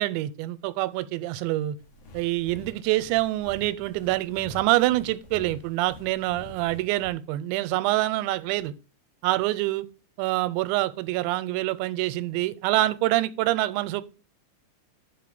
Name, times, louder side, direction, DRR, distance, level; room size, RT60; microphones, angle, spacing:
voice 1, 0.0-1.8 2.1-8.7 9.2-9.9 10.2-14.0, right 17 dB, 90° right, 2.9 m, -26 dB
sound 1, 1.8-7.1, left 2 dB, 75° left, 1.4 m, -47 dB
6.1 x 5.6 x 6.9 m
omnidirectional pair, 5.2 m